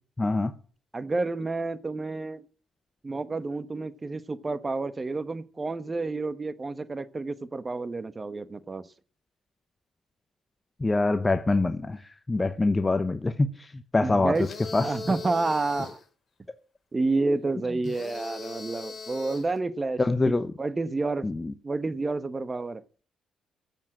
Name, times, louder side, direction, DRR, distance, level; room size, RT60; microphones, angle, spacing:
voice 1, 0.2-0.5 10.8-14.4 14.7-14.9 20.0-20.5 21.2-21.5, left 2 dB, 20° left, 0.9 m, -25 dB
voice 2, 0.9-2.4 3.0-8.9 14.0-14.5 14.8-16.0 16.9-20.3 20.6-21.3 21.6-22.8, right 3 dB, 25° right, 1.1 m, -29 dB
sound 1, 14.3-16.0 17.8-19.6, left 4 dB, 45° left, 3.8 m, -40 dB
15.0 x 7.5 x 7.5 m
cardioid pair, 90°, 0 cm